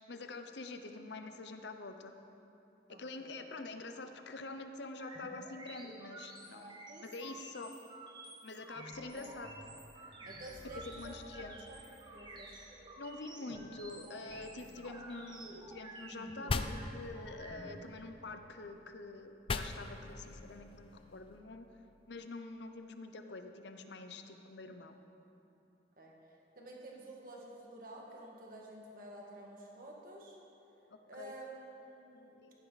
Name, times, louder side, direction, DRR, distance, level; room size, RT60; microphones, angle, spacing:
voice 1, 0.1-2.1 2.9-7.7 8.4-9.5 10.9-11.6 13.0-21.7 22.1-25.0 30.9-31.3 32.1-32.5, left 3 dB, 70° left, 7 dB, 0.7 m, -46 dB
voice 2, 2.9-3.4 6.9-7.1 7.4-7.5 9.0-9.3 10.2-12.7 14.5-14.7 26.0-26.2 26.5-30.4 31.1-32.4, right 1 dB, 50° right, -2 dB, 1.8 m, -51 dB
sound 1, 5.0-17.8, right 2 dB, 25° right, 1.0 m, -51 dB
sound 2, 9.9-12.9 13.2-13.3, left 1 dB, 80° right, 2.6 m, -57 dB
sound 3, 14.3-16.2 16.5-18.8 19.5-22.2, left 3 dB, 30° left, 0.4 m, -43 dB
15.0 x 9.8 x 4.1 m, 3.0 s
head